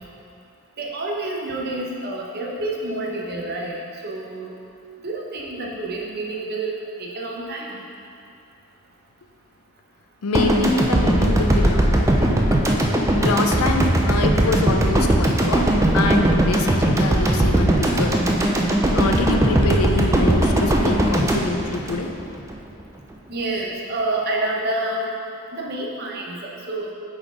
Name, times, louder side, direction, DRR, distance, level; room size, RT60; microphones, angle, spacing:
voice 1, 0.8-3.7 4.0-4.5 5.0-7.8 23.3-25.1 25.5-26.9, right 2 dB, 45° right, -2 dB, 0.8 m, -28 dB
voice 2, 10.2-12.4 13.2-15.7 15.9-18.2 18.9-22.1, left 3 dB, 85° left, 5 dB, 0.5 m, -25 dB
sound 1, 10.3-22.5, right 1 dB, 15° right, 0.3 m, -19 dB
5.8 x 4.3 x 4.9 m, 2.6 s
head